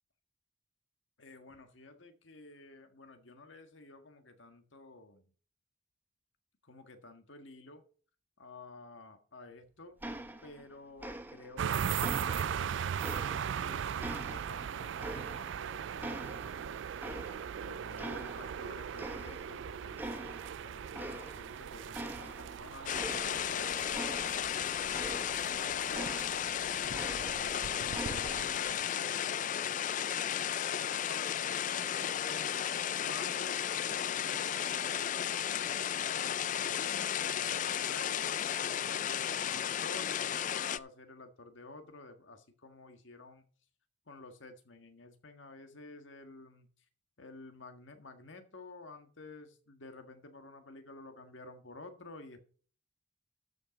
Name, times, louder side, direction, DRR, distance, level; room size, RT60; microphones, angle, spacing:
voice 1, 1.2-5.3 6.6-7.8 8.4-10.0 10.4-12.9 13.6-16.7 17.6-20.2 20.6-24.4 24.7-26.2 26.8-32.5 33.0-35.4 35.7-43.4 44.1-46.8 47.2-52.5, left 2 dB, 70° left, 7 dB, 1.7 m, -51 dB
sound 1, 10.0-10.7 11.0-11.6 12.0-13.6 14.0-15.7 16.0-17.6 18.0-18.7 19.0-19.6 20.0-20.5 20.9-21.6 21.9-25.6 25.9-27.6 27.9-28.6, right 1 dB, 10° right, 0.9 m, -44 dB
sound 2, 11.6-28.8, right 8 dB, 70° right, 0.4 m, -39 dB
sound 3, 22.9-40.8, left 9 dB, 40° left, 0.3 m, -34 dB
13.0 x 5.6 x 5.2 m, 0.42 s
head